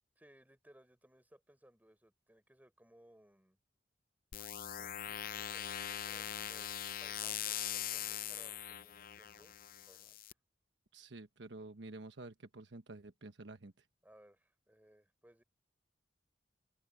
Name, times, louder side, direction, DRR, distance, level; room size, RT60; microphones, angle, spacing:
voice 1, 0.2-3.6 4.8-9.5 9.8-10.3 14.0-15.4, right 1 dB, 10° right, 4.0 m, -64 dB
sound 1, 4.3-10.3, left 11 dB, 50° left, 0.6 m, -41 dB
voice 2, 10.9-13.7, right 2 dB, 70° right, 1.2 m, -50 dB
open air
head